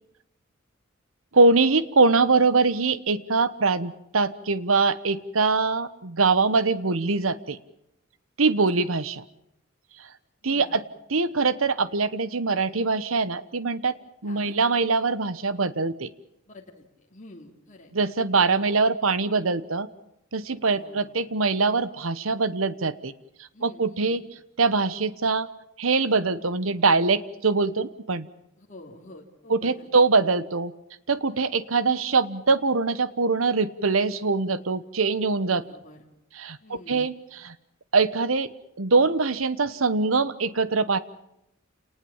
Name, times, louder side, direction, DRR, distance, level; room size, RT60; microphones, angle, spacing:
voice 1, 1.3-7.6 8.4-9.2 10.4-10.8 11.1-14.0 14.2-16.1 17.9-19.9 20.3-23.1 23.6-24.2 24.6-25.5 25.8-28.3 29.5-30.7 31.1-35.6 36.3-37.5 37.9-38.5 38.8-41.0, right 4 dB, 85° right, 15 dB, 1.1 m, -23 dB
voice 2, 10.4-10.8 14.2-14.6 16.5-17.9 20.6-21.1 23.5-24.2 28.6-29.9 31.3-31.6 35.5-36.0 36.6-37.1, left 1 dB, 40° left, 1 dB, 3.1 m, -48 dB
29.0 x 19.5 x 7.2 m, 0.81 s
head